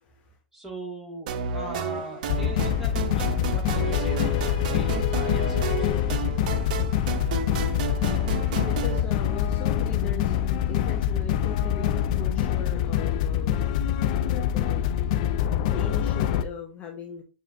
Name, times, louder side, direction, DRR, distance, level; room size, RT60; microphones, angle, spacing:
voice 1, 0.0-0.3 6.8-13.8 14.3-15.0 15.7-17.2, left 5 dB, 30° left, 1 dB, 0.8 m, -40 dB
voice 2, 0.5-6.1, right 1 dB, 5° right, -2 dB, 1.8 m, -40 dB
sound 1, 1.3-9.0, right 6 dB, 60° right, 0.5 m, -32 dB
sound 2, 2.3-16.4, left 10 dB, 55° left, 0.4 m, -25 dB
6.5 x 2.6 x 2.5 m, 0.35 s
hypercardioid pair, 100°, 5 cm